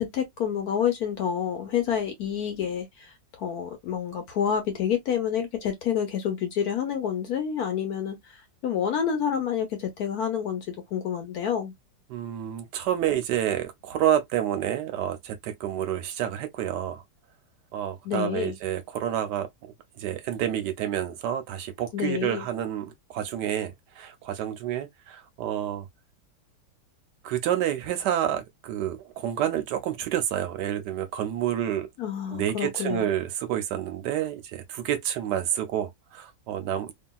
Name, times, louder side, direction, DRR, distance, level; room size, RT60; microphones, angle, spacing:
voice 1, 0.0-11.7 18.0-18.6 21.9-22.4 32.0-33.1, left 8 dB, 65° left, 1.0 m, -28 dB
voice 2, 12.1-17.0 17.7-19.5 20.0-25.9 27.2-31.9 32.3-36.9, right 11 dB, 70° right, 1.1 m, -29 dB
2.9 x 2.7 x 2.2 m
omnidirectional pair, 2.1 m